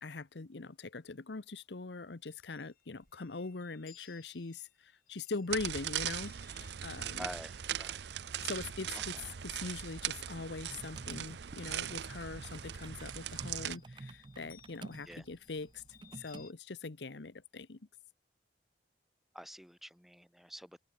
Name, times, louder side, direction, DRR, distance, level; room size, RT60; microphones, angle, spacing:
voice 1, 0.0-7.3 8.4-9.2 9.4-15.8 16.1-17.8, left 3 dB, 75° left, 0.9 m, -42 dB
Chime, 2.2-10.5 10.8-12.2 13.0-16.5, left 11 dB, 50° left, 6.0 m, -65 dB
sound 1, 5.5-13.8, right 10 dB, 70° right, 0.6 m, -40 dB
voice 2, 7.2-8.0 9.1-9.2 15.1-15.2 19.3-20.8, equal, ahead, 0.8 m, -47 dB
sound 2, 8.4-16.4, right 3 dB, 25° right, 0.4 m, -53 dB
head